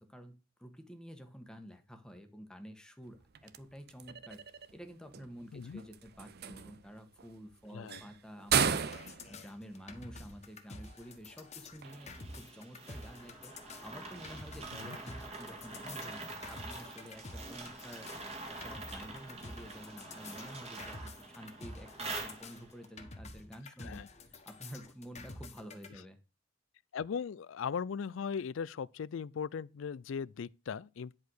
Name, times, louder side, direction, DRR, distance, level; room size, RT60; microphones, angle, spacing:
voice 1, 0.0-4.4 4.7-8.9 9.3-16.2 16.5-18.1 18.5-24.0 24.3-26.2, equal, 5° left, 1.4 m, -50 dB
sound 1, 3.0-22.6, right 7 dB, 55° right, 0.6 m, -41 dB
sound 2, 8.5-25.9, left 2 dB, 35° left, 1.5 m, -49 dB
sound 3, 11.8-22.8, right 2 dB, 30° right, 2.2 m, -45 dB
voice 2, 26.9-31.1, left 6 dB, 75° left, 0.4 m, -38 dB
10.5 x 4.7 x 6.4 m
head